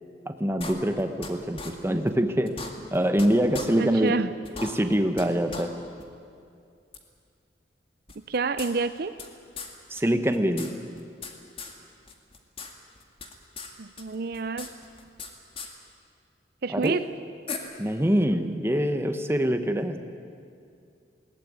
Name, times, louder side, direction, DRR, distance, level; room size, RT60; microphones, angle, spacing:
voice 1, 0.3-2.6 2.9-4.1 4.6-5.7 9.9-10.7 16.7-17.0 17.8-20.0, equal, 15° right, 7 dB, 1.2 m, -24 dB
sound 1, 0.6-1.3 1.6-1.7 2.1-2.2 2.5-3.3 3.5-3.7 4.1-4.2 4.4-5.3 5.5-5.6 6.0-6.1 6.9-7.0 8.1-9.3 9.6-9.7 10.0-10.1 10.3-11.3 11.6-11.7 12.1-12.7 13.0-13.7 14.0-15.3 15.6-15.7 16.8-16.9 17.5-17.6, left 4 dB, 30° left, 2.1 m, -38 dB
voice 2, 3.8-4.3 8.3-9.1 13.8-14.7 16.6-17.1, right 4 dB, 60° right, 12 dB, 0.6 m, -28 dB
21.0 x 18.5 x 9.6 m, 2.4 s
head